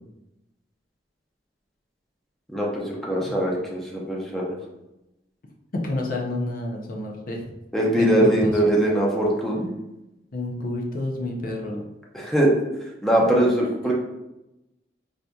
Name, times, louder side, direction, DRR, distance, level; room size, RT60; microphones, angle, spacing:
voice 1, 2.5-4.5 7.7-9.7 12.1-12.5 13.0-13.9, right 1 dB, ahead, -4 dB, 0.7 m, -21 dB
voice 2, 5.7-7.4 8.0-8.5 10.3-11.8 13.6-13.7, left 2 dB, 50° left, 0 dB, 0.5 m, -29 dB
4.8 x 2.7 x 2.3 m, 0.93 s
head